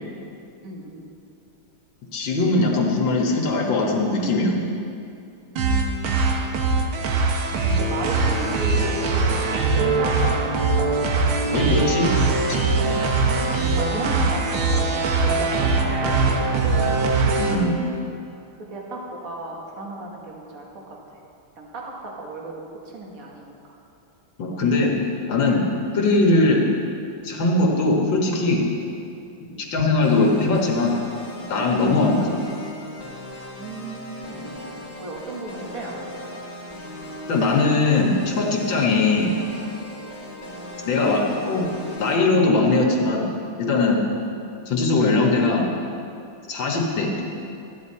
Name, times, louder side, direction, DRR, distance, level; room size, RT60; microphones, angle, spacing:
voice 1, 0.6-1.0 5.5-6.6 7.5-11.0 13.6-17.0 18.6-20.8 21.6-22.6 22.9-23.5 29.3-29.6 33.6-34.5 35.0-36.4 39.9-40.1, right 2 dB, 45° right, -2 dB, 1.9 m, -35 dB
voice 2, 2.1-4.6 11.5-12.7 17.4-17.8 24.4-24.9 25.3-25.7 25.9-26.6 27.2-28.6 29.4-30.9 31.4-32.4 34.4-34.5 37.3-39.4 40.9-41.7 41.9-43.3 43.6-44.0 44.7-45.7 46.5-47.1, left 3 dB, 65° left, 0 dB, 2.1 m, -20 dB
sound 1, 5.6-17.6, right 3 dB, 85° right, 1.9 m, -21 dB
sound 2, 30.0-42.2, left 1 dB, 20° left, 1.4 m, -38 dB
13.0 x 9.8 x 4.2 m, 2.6 s
omnidirectional pair, 2.3 m